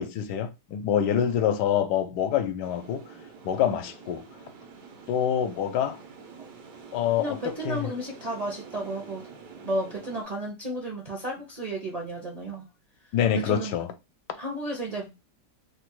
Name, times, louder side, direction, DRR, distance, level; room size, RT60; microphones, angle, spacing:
voice 1, 0.0-3.0 3.4-4.3 5.1-6.0 6.9-7.8 13.1-13.9, left 9 dB, 85° left, 1.2 m, -26 dB
sound 1, 2.6-10.2, right 5 dB, 90° right, 1.4 m, -47 dB
voice 2, 7.2-9.2 9.6-12.7 13.3-13.7 14.4-15.4, right 1 dB, 45° right, 0.5 m, -33 dB
3.3 x 2.1 x 2.9 m
omnidirectional pair, 1.8 m